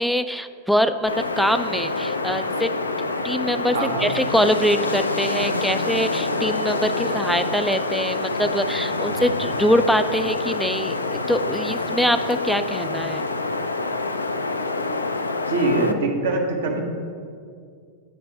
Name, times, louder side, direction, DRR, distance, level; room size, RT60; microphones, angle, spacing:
voice 1, 0.0-2.7 3.2-11.0 11.3-13.2, equal, ahead, 10 dB, 0.3 m, -23 dB
Wind, 1.1-15.9, left 3 dB, 80° left, 0.4 m, -26 dB
voice 2, 3.7-4.0 15.5-16.8, right 2 dB, 60° right, 2 dB, 1.0 m, -23 dB
9.1 x 3.3 x 5.8 m, 2.2 s
figure-of-eight pair, 90°, 0 cm